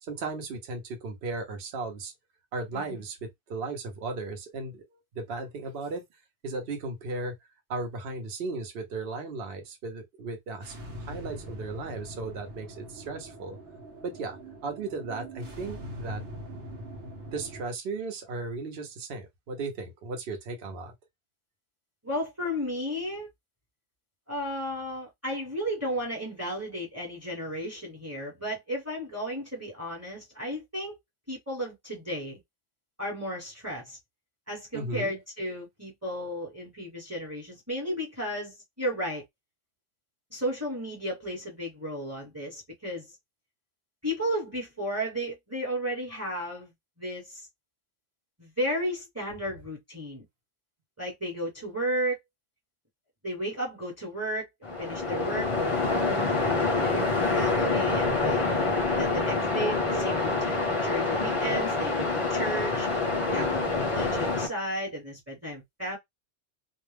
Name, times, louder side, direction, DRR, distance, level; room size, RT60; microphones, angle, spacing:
voice 1, 0.0-2.1 2.5-6.0 6.4-7.3 7.7-13.6 14.0-16.2 17.3-20.9 34.7-35.1, right 3 dB, 60° right, 0.9 m, -36 dB
sound 1, 10.6-17.7, equal, 80° right, 1.1 m, -42 dB
voice 2, 22.0-23.3 24.3-30.9 31.3-32.4 33.0-34.0 34.5-39.2 40.3-43.1 44.0-46.7 47.0-47.5 48.4-50.2 51.0-52.2 53.2-54.5 54.8-56.3 56.6-58.5 58.9-62.9 63.3-63.5 63.8-66.0, equal, 15° right, 0.9 m, -34 dB
Waves surf, 54.6-64.5, left 3 dB, 35° left, 0.6 m, -26 dB
2.4 x 2.1 x 3.2 m
omnidirectional pair, 1.2 m